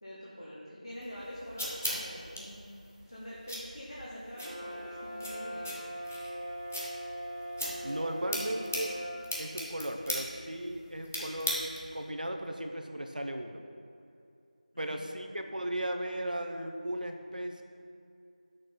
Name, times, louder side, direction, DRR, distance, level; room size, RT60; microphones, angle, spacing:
voice 1, 0.0-2.7 3.1-5.8 14.7-15.2, equal, 40° left, -7 dB, 1.3 m, -45 dB
sound 1, 1.0-12.0, equal, 15° left, 0.6 m, -40 dB
Brass instrument, 4.3-9.2, equal, ahead, 2.0 m, -40 dB
voice 2, 7.8-8.9 9.4-13.6 14.8-17.6, right 1 dB, 75° right, 4 dB, 0.8 m, -36 dB
9.1 x 6.4 x 3.7 m, 2.6 s
figure-of-eight pair, 175°, 5 cm